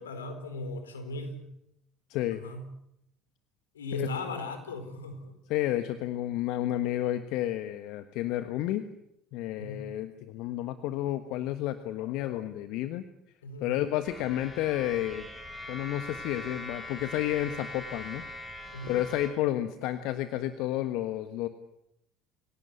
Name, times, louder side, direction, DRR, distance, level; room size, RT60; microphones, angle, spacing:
voice 1, 0.0-1.5 2.4-2.7 3.7-5.4 9.6-9.9 13.4-13.7 18.7-19.0, left 2 dB, 85° left, 8 dB, 4.5 m, -37 dB
voice 2, 2.1-2.4 3.9-4.1 5.5-8.8 9.3-13.0 13.6-15.3 15.7-18.3 18.6-21.5, left 13 dB, 60° left, 11 dB, 1.4 m, -31 dB
sound 1, 14.0-19.3, left 1 dB, 15° left, 7.2 m, -42 dB
27.0 x 18.0 x 9.7 m, 0.79 s
hypercardioid pair, 65°, 0 cm